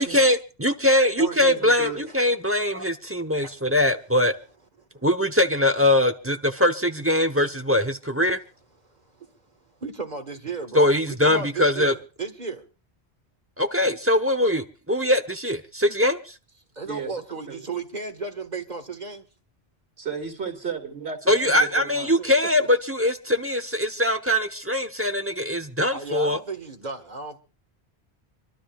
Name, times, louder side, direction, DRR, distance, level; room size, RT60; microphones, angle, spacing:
voice 1, 0.0-4.3 5.0-8.4 10.7-11.9 13.6-16.3 21.3-26.4, left 1 dB, 15° right, 0.8 m, -22 dB
voice 2, 1.2-2.0 16.8-17.7 20.0-22.1, right 6 dB, 90° right, 2.6 m, -34 dB
voice 3, 3.1-3.6 4.9-5.0 8.9-9.4 9.8-12.6 16.7-19.3 22.2-22.3 25.9-27.4, right 4 dB, 45° right, 1.7 m, -34 dB
27.5 x 12.5 x 2.4 m
omnidirectional pair, 1.1 m